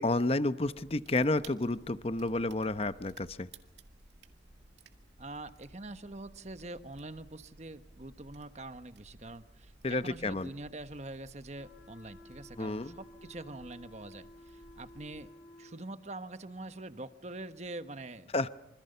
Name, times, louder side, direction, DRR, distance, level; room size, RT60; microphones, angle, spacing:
voice 1, 0.0-3.5 9.8-10.5 12.6-13.0 18.3-18.5, left 2 dB, 35° left, 13 dB, 0.8 m, -30 dB
sound 1, 0.6-15.3, right 2 dB, 75° right, 2.1 m, -57 dB
voice 2, 5.2-15.3 15.6-18.3, right 2 dB, 40° right, 11 dB, 1.2 m, -44 dB
sound 2, 11.6-15.8, left 1 dB, 70° left, 5.2 m, -54 dB
26.5 x 25.5 x 6.8 m, 0.87 s
head